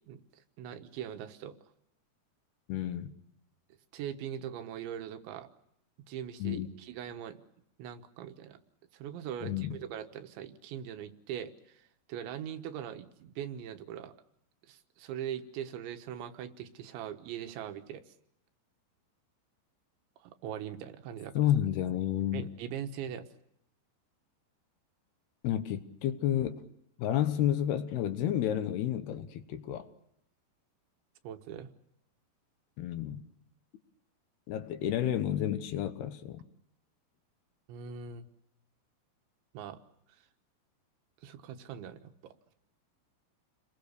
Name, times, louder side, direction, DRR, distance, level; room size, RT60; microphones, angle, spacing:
voice 1, 0.6-1.6 3.9-5.5 6.1-7.4 7.8-8.6 8.9-11.8 12.1-14.1 14.7-18.0 20.2-21.4 22.3-23.3 31.2-31.7 37.7-38.3 39.6-39.8 41.2-42.3, right 9 dB, 90° right, 3.6 m, -41 dB
voice 2, 2.7-3.1 6.4-6.7 9.4-9.8 21.4-22.5 25.4-26.6 27.0-29.9 32.8-33.2 34.5-36.4, left 11 dB, 70° left, 2.9 m, -31 dB
29.0 x 21.5 x 6.7 m
omnidirectional pair, 5.1 m